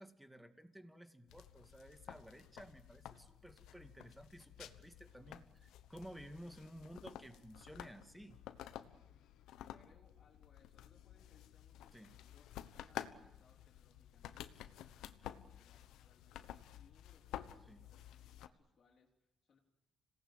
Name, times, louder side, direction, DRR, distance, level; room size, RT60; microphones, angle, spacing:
voice 1, 0.0-8.4 11.9-12.1 17.7-17.8, equal, 5° right, 8 dB, 2.3 m, -54 dB
sound 1, 1.3-18.5, left 11 dB, 90° left, 1.1 m, -52 dB
voice 2, 9.0-19.6, left 5 dB, 55° left, -3 dB, 3.9 m, -72 dB
26.5 x 18.5 x 8.9 m, 0.97 s
cardioid pair, 85°, 0 cm